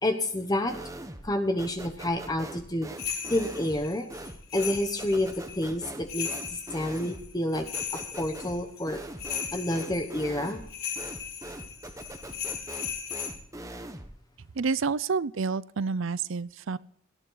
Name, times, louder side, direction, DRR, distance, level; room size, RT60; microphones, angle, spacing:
voice 1, 0.0-0.8 1.2-2.9 3.3-4.1 4.5-7.7 7.9-9.0 9.5-10.6, left 1 dB, 20° left, 6 dB, 1.0 m, -29 dB
sound 1, 0.7-1.3 1.6-14.2, right 1 dB, 15° right, 1.0 m, -42 dB
sound 2, 3.0-13.3, left 8 dB, 50° left, 6.2 m, -37 dB
voice 2, 14.6-16.8, right 4 dB, 70° right, 18 dB, 0.5 m, -29 dB
18.0 x 12.0 x 4.0 m, 0.65 s
head